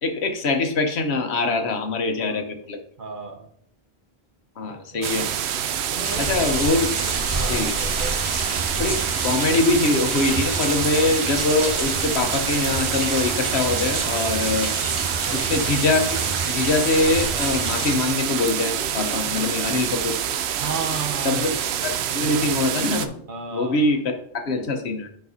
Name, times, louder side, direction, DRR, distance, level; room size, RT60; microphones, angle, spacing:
voice 1, 0.0-2.8 4.6-5.3 6.2-6.9 7.5-7.7 8.8-14.7 15.3-16.2 16.5-20.1 21.2-21.5 21.8-23.1 23.5-25.1, left 3 dB, 85° left, 5 dB, 1.2 m, -23 dB
voice 2, 3.0-3.5 4.9-5.2 5.9-6.4 7.3-8.2 15.3-15.5 20.6-21.8 22.1-22.6 23.3-23.9, right 4 dB, 55° right, 3 dB, 1.1 m, -34 dB
sound 1, 5.0-23.1, right 9 dB, 80° right, 0.8 m, -27 dB
sound 2, 6.0-17.9, right 2 dB, 30° right, 1.1 m, -29 dB
10.5 x 4.6 x 2.7 m, 0.69 s
omnidirectional pair, 1.1 m